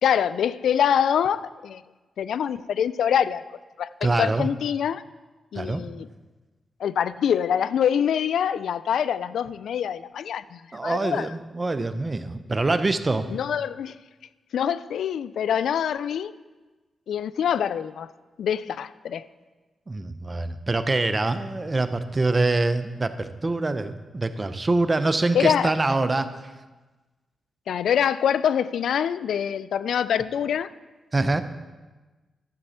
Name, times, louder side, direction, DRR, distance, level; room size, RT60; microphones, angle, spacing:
voice 1, 0.0-1.8 2.2-3.4 3.8-5.0 5.5-6.1 6.8-11.3 13.3-13.9 14.5-16.3 17.1-18.1 18.4-19.2 25.3-25.7 27.7-30.7, left 8 dB, 80° left, 16 dB, 0.3 m, -25 dB
voice 2, 4.0-4.5 5.6-5.8 10.7-13.3 19.9-26.3 31.1-31.4, right 2 dB, 35° right, 11 dB, 0.8 m, -24 dB
12.0 x 7.8 x 4.3 m, 1.2 s
supercardioid pair, 55°, 0 cm